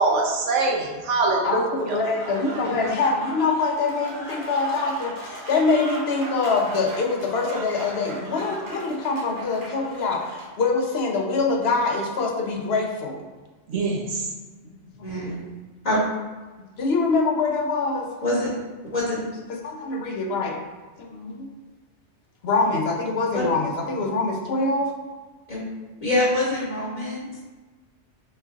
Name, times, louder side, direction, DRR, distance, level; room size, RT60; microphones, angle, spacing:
voice 1, 0.0-2.0 13.7-14.3, right 3 dB, 80° right, 0 dB, 1.1 m, -23 dB
voice 2, 1.4-13.2 16.8-18.1 19.5-20.6 21.0-21.5 22.4-24.9, left 3 dB, 65° left, 1 dB, 0.9 m, -24 dB
Applause / Crowd, 1.7-10.6, right 1 dB, 50° right, 0.9 m, -38 dB
voice 3, 15.0-15.4 15.8-16.0 18.2-18.5 18.9-19.2 23.3-23.4 25.5-25.6 26.0-27.4, left 1 dB, 35° left, -7 dB, 1.2 m, -25 dB
4.1 x 3.2 x 3.5 m, 1.3 s
omnidirectional pair, 1.2 m